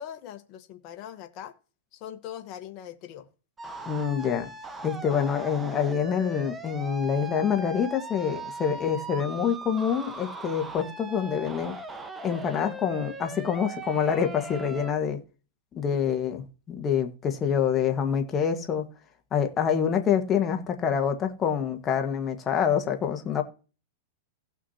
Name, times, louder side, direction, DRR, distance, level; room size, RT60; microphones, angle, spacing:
voice 1, 0.0-1.5 1.9-3.3, left 10 dB, 45° left, 1.2 m, -41 dB
sound 1, 3.6-14.9, right 2 dB, 15° right, 1.1 m, -39 dB
voice 2, 3.8-4.5 4.8-11.8 12.2-15.2 15.7-18.9 19.3-23.4, left 7 dB, 25° left, 1.5 m, -26 dB
17.0 x 6.1 x 2.8 m
hypercardioid pair, 130°, 0 cm